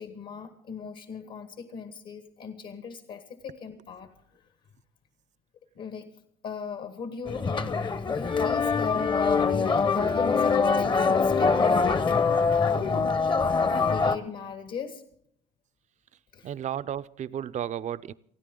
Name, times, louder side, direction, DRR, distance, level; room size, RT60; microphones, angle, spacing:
voice 1, 0.0-4.4 5.7-6.1 6.4-11.9 12.5-15.0 16.3-16.5, left 6 dB, 65° left, 1.5 m, -39 dB
sound 1, 7.3-14.2, left 5 dB, 30° left, 0.8 m, -24 dB
voice 2, 16.4-18.1, right 10 dB, 45° right, 0.5 m, -33 dB
29.0 x 9.9 x 3.8 m
cardioid pair, 110°, 17 cm